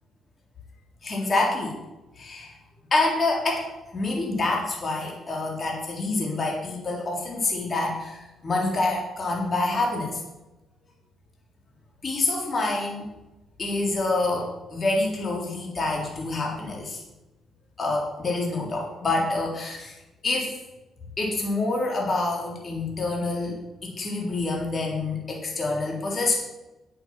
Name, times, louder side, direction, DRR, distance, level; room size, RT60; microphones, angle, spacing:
voice 1, 1.0-1.8 2.2-2.6 2.9-10.2 12.0-13.1 13.6-17.0 17.8-19.9 20.2-20.5 21.2-26.4, left 2 dB, 40° left, -1 dB, 3.6 m, -27 dB
9.1 x 7.9 x 7.6 m, 1.0 s
cardioid pair, 90°, 0 cm